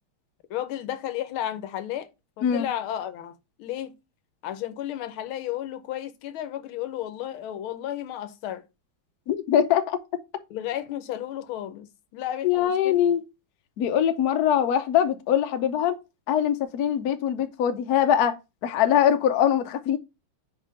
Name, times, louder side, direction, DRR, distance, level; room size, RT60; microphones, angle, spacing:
voice 1, 0.5-2.1 2.4-3.9 4.4-8.6 10.5-13.0, left 12 dB, 80° left, 1.5 m, -33 dB
voice 2, 9.3-10.0 12.4-13.2 13.8-16.0 16.3-18.4 18.6-20.0, left 9 dB, 65° left, 1.0 m, -22 dB
5.0 x 3.6 x 5.4 m
omnidirectional pair, 2.3 m